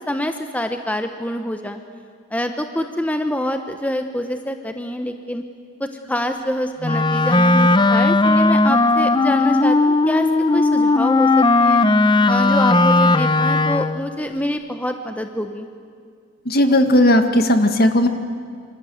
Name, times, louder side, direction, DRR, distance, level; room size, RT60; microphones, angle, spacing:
voice 1, 0.0-1.8 2.3-5.4 5.8-10.3 10.5-11.8 12.3-15.7, left 1 dB, 10° left, 6 dB, 1.0 m, -26 dB
Wind instrument woodwind instrument, 6.8-14.1, left 2 dB, 25° left, 0.7 m, -16 dB
voice 2, 16.5-18.1, left 1 dB, 50° left, 7 dB, 1.9 m, -15 dB
26.5 x 26.0 x 7.9 m, 2.2 s
head